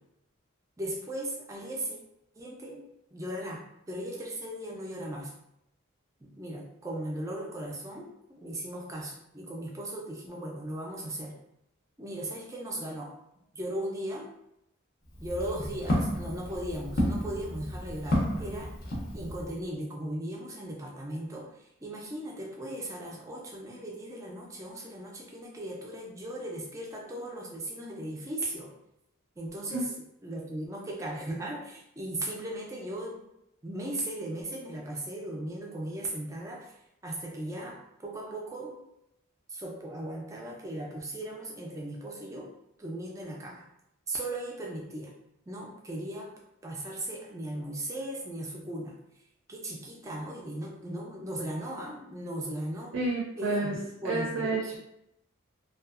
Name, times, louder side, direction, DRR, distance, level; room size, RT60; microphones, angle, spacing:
voice 1, 0.8-2.0 2.4-2.8 3.1-3.6 3.9-5.3 6.2-11.4 12.0-13.1 13.5-14.3 15.2-18.7 19.1-28.7 29.4-29.9 30.2-33.2 33.6-36.8 37.0-38.8 39.5-42.5 42.8-43.6 44.1-45.1 45.5-46.3 46.6-49.0 49.5-53.0 53.4-54.8, right 1 dB, 15° right, -2 dB, 0.4 m, -37 dB
Walk footsteps, 15.0-19.6, left 1 dB, 40° left, 0.5 m, -32 dB
voice 2, 52.9-54.8, right 2 dB, 75° right, -4 dB, 0.5 m, -30 dB
2.7 x 2.3 x 2.4 m, 0.81 s
head